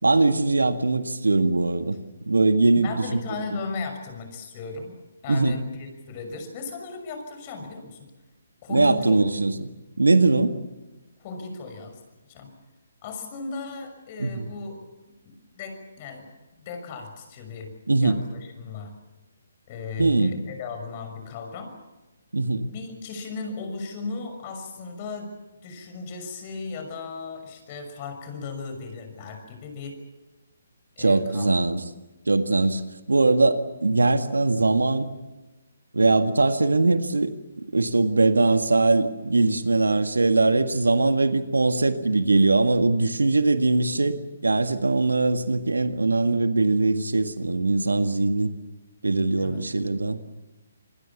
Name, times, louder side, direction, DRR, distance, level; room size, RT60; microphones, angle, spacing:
voice 1, 0.0-3.0 5.3-5.6 8.7-9.7 10.0-10.6 14.2-14.5 17.9-18.2 20.0-20.4 22.3-22.7 31.0-31.8 32.3-32.8 33.1-35.1 35.9-48.5 49.0-50.2, right 3 dB, 90° right, 9 dB, 1.8 m, -21 dB
voice 2, 2.7-5.0 5.2-8.1 8.6-9.2 11.2-12.0 12.3-12.5 13.0-14.8 15.2-16.3 16.6-17.7 18.0-18.9 19.7-21.7 22.6-25.3 25.6-30.0 31.0-31.6 49.4-49.6, left 4 dB, 35° left, 6 dB, 6.3 m, -36 dB
26.5 x 21.0 x 7.2 m, 1.1 s
figure-of-eight pair, 145°, 0 cm